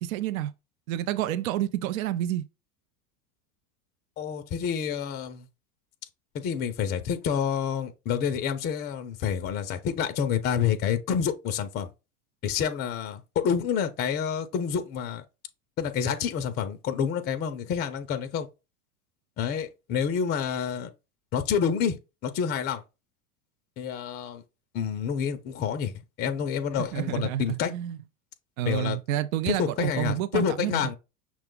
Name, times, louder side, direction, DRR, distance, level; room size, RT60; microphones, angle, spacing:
voice 1, 0.0-0.5 0.9-2.5 26.9-28.0 28.6-30.9, right 12 dB, 70° right, 0.5 m, -29 dB
voice 2, 4.2-5.5 6.3-11.9 12.4-15.2 15.8-18.5 19.4-20.9 21.3-22.0 22.2-22.8 23.8-24.4 24.7-27.7 28.7-29.0 29.5-31.0, left 7 dB, 25° left, 0.4 m, -28 dB
5.9 x 2.3 x 3.7 m
hypercardioid pair, 105°, 43 cm